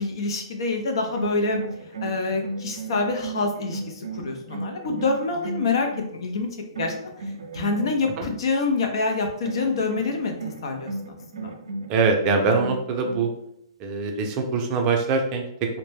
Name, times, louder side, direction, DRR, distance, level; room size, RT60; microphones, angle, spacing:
voice 1, 0.0-1.6 2.0-6.5 6.8-7.0 7.5-10.3 10.6-11.5, left 3 dB, 65° left, 4 dB, 0.5 m, -26 dB
sound 1, 1.0-6.2 6.7-8.3 9.4-13.3, right 2 dB, 85° right, 0.4 m, -35 dB
voice 2, 11.9-13.3 13.8-15.8, right 4 dB, 30° right, 2 dB, 0.5 m, -23 dB
2.1 x 2.1 x 3.2 m, 0.75 s
hypercardioid pair, 130°, 3 cm